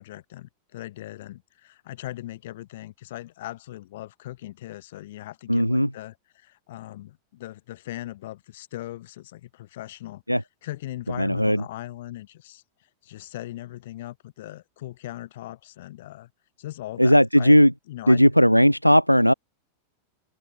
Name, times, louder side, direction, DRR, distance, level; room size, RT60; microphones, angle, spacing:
voice 1, 0.0-10.2 10.6-12.6 13.0-16.3 16.6-17.6 17.9-18.3, left 15 dB, 55° left, 4.4 m, -39 dB
voice 2, 5.5-5.9 10.3-10.4 11.2-11.6 17.0-17.7 18.1-19.3, equal, 90° left, 0.6 m, -17 dB
open air
figure-of-eight pair, 90°, 0 cm